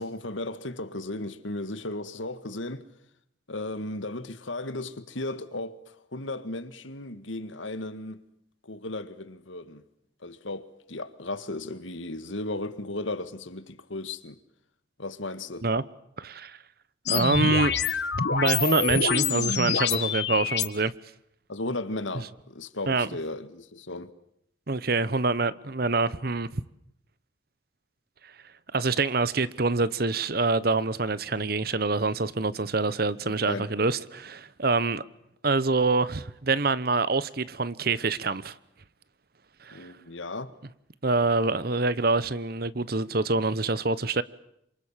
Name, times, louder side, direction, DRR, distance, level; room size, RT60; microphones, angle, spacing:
voice 1, 0.0-2.9 3.5-5.8 6.1-8.2 8.6-9.8 10.2-14.4 15.0-15.7 21.5-24.1 33.3-33.7 39.7-40.5, left 2 dB, 80° left, 1.9 m, -35 dB
voice 2, 16.2-16.6 17.1-17.7 18.3-20.9 22.9-23.1 24.7-26.6 28.2-28.3 28.7-35.0 35.4-38.6 39.6-39.9 41.0-44.2, right 3 dB, 50° right, 1.0 m, -26 dB
sound 1, 17.1-20.7, left 6 dB, 60° left, 1.6 m, -26 dB
28.0 x 26.0 x 7.5 m
head